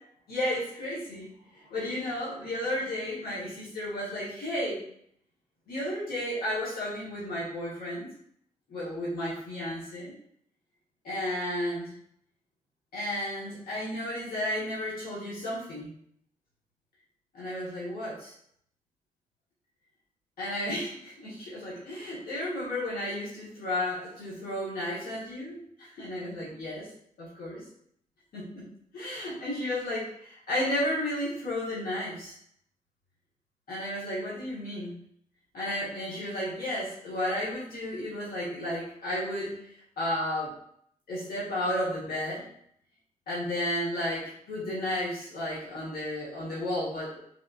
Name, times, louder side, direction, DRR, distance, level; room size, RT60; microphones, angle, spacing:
voice 1, 0.3-4.8 5.7-8.1 8.7-10.1 11.0-11.9 12.9-15.9 17.3-18.3 20.4-26.9 27.2-27.6 28.3-28.6 28.9-32.3 33.7-34.9 35.5-39.6 40.0-40.6 41.1-42.5 43.3-47.2, left 1 dB, 90° left, -8 dB, 1.2 m, -33 dB
3.3 x 2.7 x 2.4 m, 0.68 s
cardioid pair, 55°, 15 cm